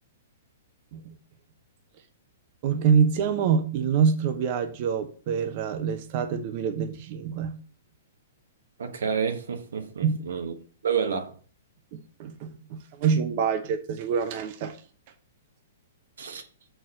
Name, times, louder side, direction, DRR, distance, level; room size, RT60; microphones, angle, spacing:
voice 1, 2.6-7.6 10.0-10.2 11.9-14.8, right 6 dB, 45° right, 0.8 m, -26 dB
voice 2, 8.8-10.5 10.8-11.3 16.2-16.5, right 7 dB, 80° right, 1.2 m, -29 dB
6.1 x 4.6 x 5.7 m
hypercardioid pair, 135°, 0 cm